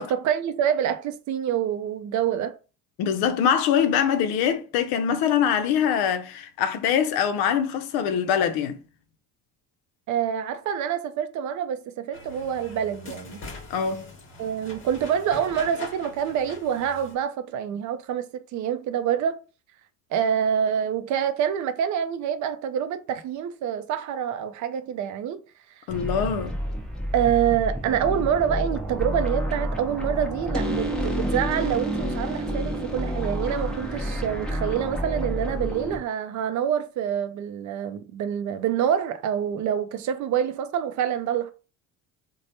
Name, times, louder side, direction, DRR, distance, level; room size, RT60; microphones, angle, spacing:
voice 1, 0.0-2.6 10.1-13.4 14.4-19.4 20.1-25.4 25.8-25.9 27.1-41.5, right 9 dB, 45° right, 0.4 m, -26 dB
voice 2, 3.0-8.8 13.7-14.1 25.9-26.6, left 8 dB, 60° left, 0.5 m, -23 dB
sound 1, 12.1-17.1, left 3 dB, 30° left, 1.0 m, -42 dB
sound 2, 25.9-36.0, right 1 dB, ahead, 0.7 m, -29 dB
3.0 x 2.1 x 2.8 m
hypercardioid pair, 70°, 41 cm